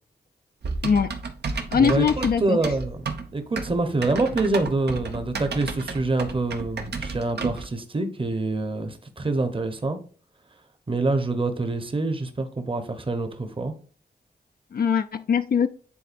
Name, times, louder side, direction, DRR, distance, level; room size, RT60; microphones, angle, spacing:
Typing, 0.6-7.7, right 4 dB, 75° right, 0.8 m, -32 dB
voice 1, 0.8-1.2 1.7-2.6 14.7-15.7, left 6 dB, 60° left, 0.4 m, -21 dB
voice 2, 1.8-3.0 3.3-10.0 10.9-13.7, right 2 dB, 30° right, 1.0 m, -26 dB
9.9 x 3.9 x 2.5 m
wide cardioid pair, 80°, 17 cm